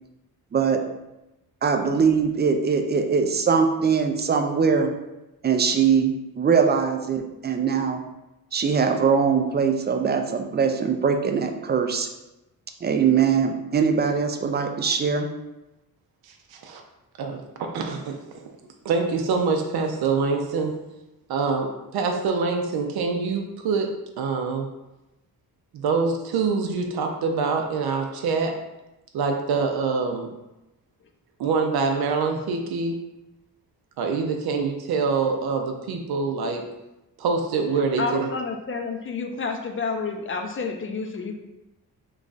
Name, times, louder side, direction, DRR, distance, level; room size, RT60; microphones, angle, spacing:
voice 1, 1.6-4.9 5.4-8.0 8.5-12.1 12.8-15.3, right 6 dB, 30° right, 6 dB, 0.4 m, -22 dB
voice 2, 17.2-18.5 18.8-20.8 21.3-24.7 25.7-28.6 29.1-30.3 31.4-33.0 34.0-36.7 37.2-38.3, right 4 dB, 80° right, 3 dB, 0.5 m, -25 dB
voice 3, 38.0-41.3, left 4 dB, 35° left, 4 dB, 0.5 m, -29 dB
3.1 x 2.3 x 3.8 m, 0.96 s
cardioid pair, 85°, 37 cm